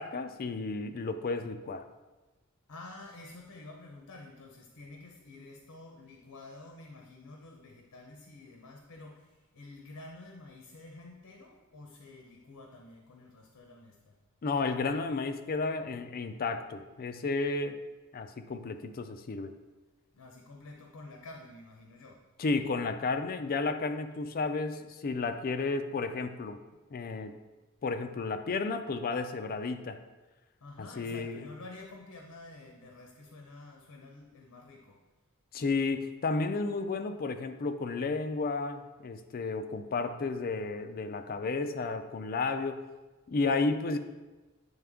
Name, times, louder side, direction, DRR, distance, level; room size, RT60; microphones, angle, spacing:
voice 1, 0.0-1.8 14.4-17.8 18.1-19.5 22.4-26.6 26.9-27.3 27.8-30.0 30.8-31.5 35.5-42.8 43.3-44.0, left 3 dB, 40° left, 8 dB, 0.4 m, -32 dB
voice 2, 2.7-14.2 20.1-22.3 30.6-35.0, left 2 dB, 85° left, 1 dB, 0.7 m, -49 dB
8.9 x 3.3 x 3.6 m, 1.2 s
head